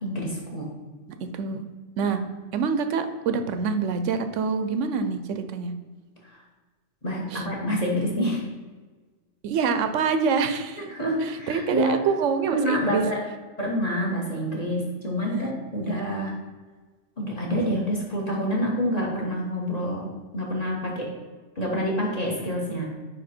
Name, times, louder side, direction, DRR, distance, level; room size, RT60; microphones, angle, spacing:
voice 1, 0.0-0.7 2.0-2.1 7.0-8.4 10.8-11.9 12.5-13.2 13.6-16.3 17.2-21.1 21.5-22.9, equal, 30° left, -3 dB, 1.5 m, -27 dB
voice 2, 1.2-1.6 2.0-2.2 2.5-5.7 7.3-7.5 9.4-10.8 11.2-13.1 15.2-15.5 15.8-16.1, right 5 dB, 75° right, 8 dB, 1.0 m, -26 dB
9.3 x 3.3 x 4.3 m, 1.3 s
omnidirectional pair, 1.3 m